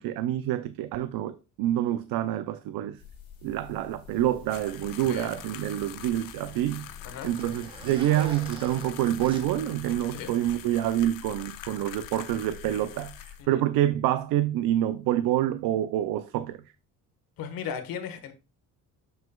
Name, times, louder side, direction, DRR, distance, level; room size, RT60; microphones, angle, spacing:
voice 1, 0.0-3.0 3.4-6.9 7.2-16.6, right 13 dB, 90° right, 0.5 m, -27 dB
sound 1, 3.0-13.4, left 8 dB, 40° left, 2.4 m, -49 dB
Zipper (clothing), 4.1-11.0, right 1 dB, 15° right, 1.2 m, -47 dB
sound 2, 4.5-13.4, left 12 dB, 70° left, 0.7 m, -45 dB
voice 2, 5.0-5.4 7.0-7.3 10.1-10.3 13.4-13.6 17.4-18.3, left 7 dB, 85° left, 1.3 m, -36 dB
7.1 x 6.2 x 2.3 m
cardioid pair, 140°, 34 cm